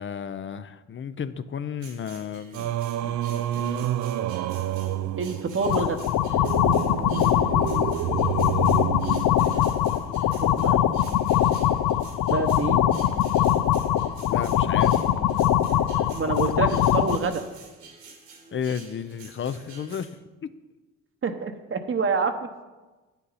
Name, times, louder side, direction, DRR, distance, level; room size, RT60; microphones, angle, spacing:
voice 1, 0.0-3.9 4.5-4.6 14.3-15.1 18.5-20.5, left 7 dB, 40° left, 13 dB, 0.6 m, -34 dB
sound 1, 1.8-20.1, right 4 dB, 85° right, 2.6 m, -48 dB
Singing, 2.5-9.9, right 13 dB, 60° right, 0.5 m, -29 dB
voice 2, 5.2-6.0 10.4-10.8 12.3-12.8 16.1-17.4 21.2-22.3, right 4 dB, 40° right, 7 dB, 1.0 m, -27 dB
sound 2, 5.6-17.2, left 11 dB, 75° left, 0.6 m, -22 dB
9.8 x 8.2 x 4.1 m, 1.2 s
supercardioid pair, 60°, 32 cm